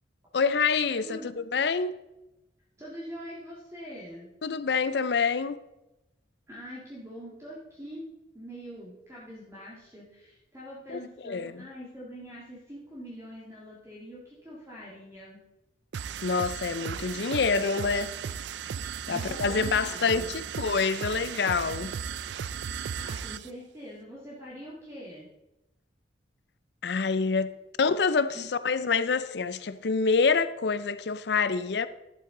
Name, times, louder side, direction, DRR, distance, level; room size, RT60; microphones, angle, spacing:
voice 1, 0.3-2.0 4.4-5.6 10.9-11.6 16.2-18.1 19.1-21.9 26.8-31.9, left 5 dB, 65° left, 0.5 m, -27 dB
voice 2, 0.9-1.3 2.8-4.3 6.5-8.1 8.3-15.4 19.1-20.3 22.7-25.3 28.3-28.5, equal, 15° right, 1.9 m, -44 dB
sound 1, 15.9-23.5, right 7 dB, 70° right, 0.4 m, -36 dB
11.5 x 8.0 x 3.8 m
head